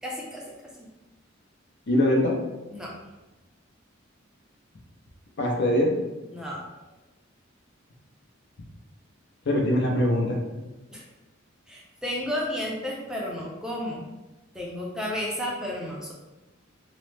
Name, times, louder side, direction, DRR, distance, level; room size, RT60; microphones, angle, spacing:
voice 1, 0.0-0.4 0.8-0.9 2.7-2.9 6.3-6.6 10.9-11.0 11.7-14.0 14.5-16.1, left 1 dB, 5° right, -3 dB, 0.4 m, -32 dB
voice 2, 1.9-2.4 5.4-6.0 9.5-10.4, left 1 dB, 60° left, 0 dB, 0.6 m, -22 dB
3.0 x 2.0 x 3.2 m, 1.1 s
head